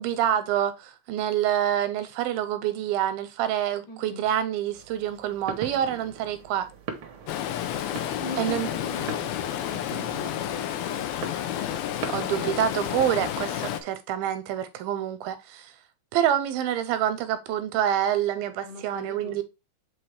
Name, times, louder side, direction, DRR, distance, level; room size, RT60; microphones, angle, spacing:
voice 1, 0.0-6.7 8.4-8.7 12.1-15.7 16.1-19.4, right 10 dB, 85° right, 2.5 m, -27 dB
voice 2, 3.9-4.3 8.2-11.4 18.6-19.4, left 2 dB, 50° left, 4.0 m, -41 dB
sound 1, 4.7-13.8, right 5 dB, 65° right, 1.4 m, -42 dB
Stream, 7.3-13.8, left 11 dB, 80° left, 2.6 m, -30 dB
7.7 x 4.3 x 3.3 m
omnidirectional pair, 4.3 m